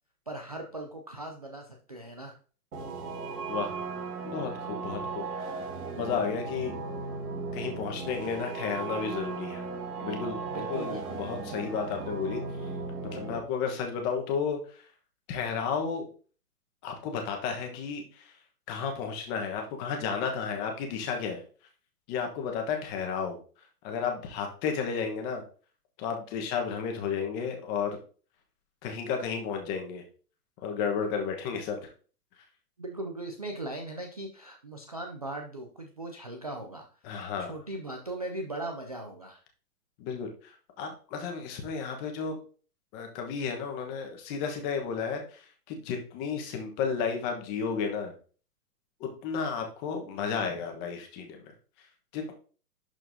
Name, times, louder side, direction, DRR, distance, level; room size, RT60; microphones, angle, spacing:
voice 1, 0.3-2.4 10.4-11.2 32.8-36.9 37.4-39.4, right 2 dB, 25° right, 3 dB, 0.4 m, -39 dB
sound 1, 2.7-13.4, right 4 dB, 70° right, 2.3 m, -36 dB
voice 2, 4.2-5.2 6.0-6.7 7.5-9.6 10.0-12.4 13.1-14.6 15.3-16.1 16.8-18.3 18.7-21.4 22.1-23.4 23.8-25.4 26.0-28.0 28.8-30.0 30.6-31.8 37.0-37.6 40.0-42.4 42.9-48.1 49.0-51.5 52.1-52.3, left 6 dB, 20° left, 3 dB, 1.2 m, -32 dB
11.5 x 4.4 x 2.7 m, 0.39 s
hypercardioid pair, 150°, 47 cm